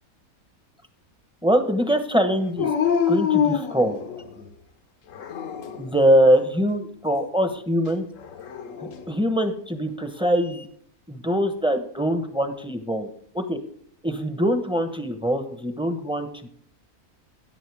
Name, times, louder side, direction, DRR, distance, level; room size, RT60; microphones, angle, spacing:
voice 1, 1.4-2.7 3.1-4.0 5.8-8.0 8.8-10.7 11.1-13.1 13.3-13.6 14.0-16.5, equal, 5° right, 7 dB, 0.8 m, -23 dB
Dog, 2.6-4.5 5.1-5.9 8.2-9.0, left 8 dB, 65° left, 1.2 m, -25 dB
13.5 x 10.0 x 3.5 m, 0.62 s
omnidirectional pair, 1.5 m